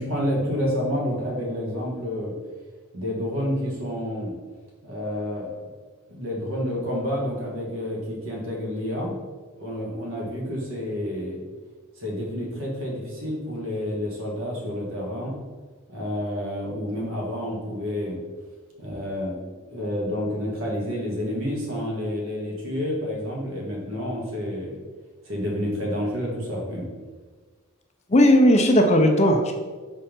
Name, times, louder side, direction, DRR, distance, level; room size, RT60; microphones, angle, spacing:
voice 1, 0.0-2.4 2.9-4.3 4.8-5.5 6.1-9.2 9.6-11.4 12.0-15.4 15.9-18.2 18.8-19.4 19.7-24.8 25.3-26.9, equal, 60° right, -2 dB, 1.8 m, -29 dB
voice 2, 28.1-29.5, equal, 30° left, 4 dB, 0.5 m, -16 dB
5.4 x 4.2 x 5.2 m, 1.4 s
head